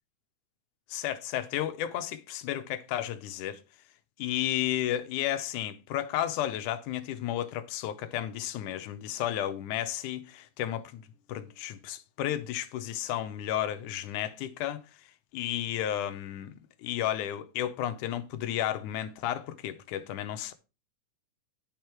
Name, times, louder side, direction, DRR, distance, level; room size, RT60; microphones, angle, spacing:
voice 1, 0.9-3.6 4.2-11.0 11.3-16.5 16.8-20.5, left 12 dB, 75° left, 2.2 m, -33 dB
10.5 x 5.3 x 4.5 m
omnidirectional pair, 3.7 m